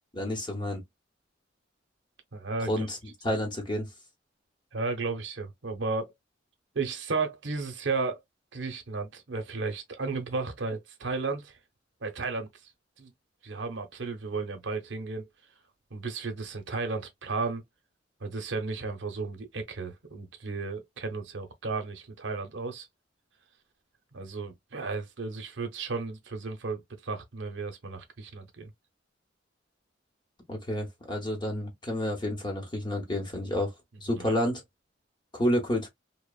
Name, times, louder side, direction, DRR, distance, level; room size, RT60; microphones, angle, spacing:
voice 1, 0.1-0.8 2.7-3.0 3.2-3.9 30.5-33.7 34.0-34.6 35.3-35.9, equal, 25° left, 0.9 m, -29 dB
voice 2, 2.3-2.9 4.7-6.1 6.7-8.2 8.5-11.6 12.0-12.7 13.0-13.1 13.4-15.3 15.9-17.6 18.2-22.9 24.1-28.7 34.1-34.4, right 4 dB, 70° right, 0.7 m, -34 dB
2.9 x 2.1 x 2.3 m
head